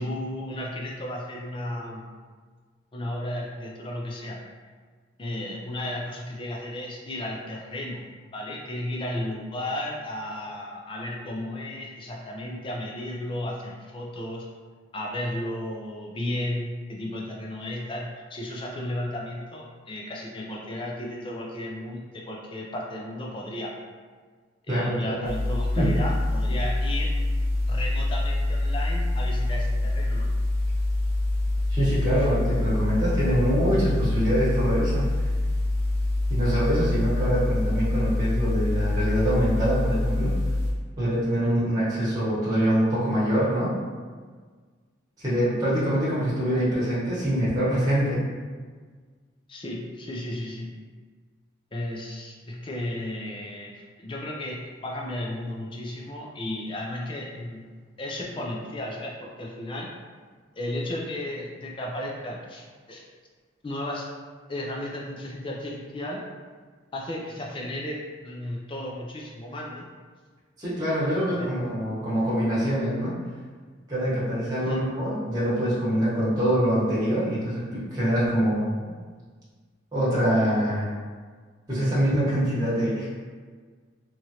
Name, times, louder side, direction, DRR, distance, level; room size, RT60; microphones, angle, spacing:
voice 1, 0.0-2.0 2.9-4.4 5.2-8.1 8.3-14.5 14.9-23.7 24.7-27.1 27.7-30.4 32.1-32.3 41.4-41.8 49.5-50.7 51.7-53.7 54.0-57.6 58.0-59.9 60.5-63.0 63.6-64.1 64.5-66.2 66.9-69.9 71.3-71.5 74.7-74.8, left 1 dB, 25° left, -1 dB, 0.3 m, -34 dB
voice 2, 24.7-25.3 25.8-25.9 31.7-35.1 36.3-40.4 41.0-43.7 45.2-48.2 70.6-73.2 73.9-78.7 79.9-80.9 81.7-83.1, equal, 20° right, -10 dB, 1.0 m, -24 dB
sound 1, 25.2-40.7, left 2 dB, 80° right, 0.6 m, -25 dB
3.0 x 2.4 x 2.8 m, 1.5 s
head